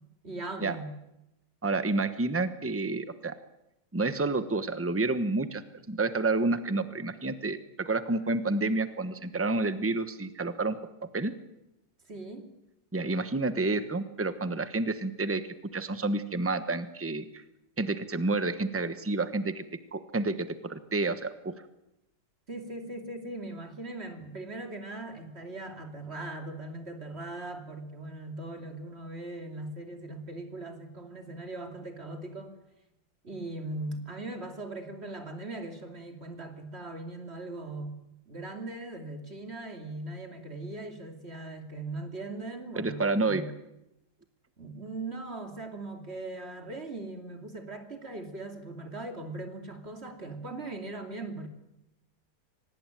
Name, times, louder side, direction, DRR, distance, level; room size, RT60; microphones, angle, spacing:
voice 1, 0.2-0.9 12.1-12.5 22.5-32.6 33.2-38.0 38.2-43.5 44.6-51.5, right 2 dB, 35° right, 5 dB, 3.0 m, -39 dB
voice 2, 1.6-3.3 3.9-5.6 5.9-10.8 11.1-11.3 12.9-15.4 15.7-17.4 17.8-19.6 19.9-21.5 42.8-43.4, right 3 dB, 10° right, 11 dB, 0.9 m, -29 dB
25.0 x 19.0 x 9.2 m, 0.90 s
omnidirectional pair, 2.0 m